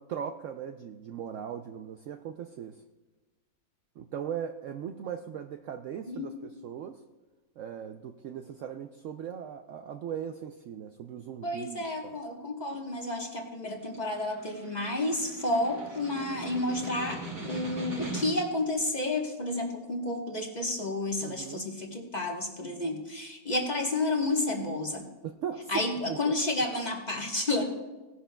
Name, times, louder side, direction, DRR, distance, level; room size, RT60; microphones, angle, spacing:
voice 1, 0.0-2.8 4.0-7.0 7.6-12.1 21.2-21.7 25.2-26.4, right 8 dB, 85° right, 6 dB, 0.6 m, -39 dB
voice 2, 11.4-25.0 25.7-27.6, left 2 dB, 30° left, 1 dB, 1.1 m, -31 dB
Snare drum, 13.7-18.6, right 2 dB, 65° right, 4.6 m, -41 dB
17.5 x 11.0 x 2.2 m, 1.2 s
omnidirectional pair, 1.9 m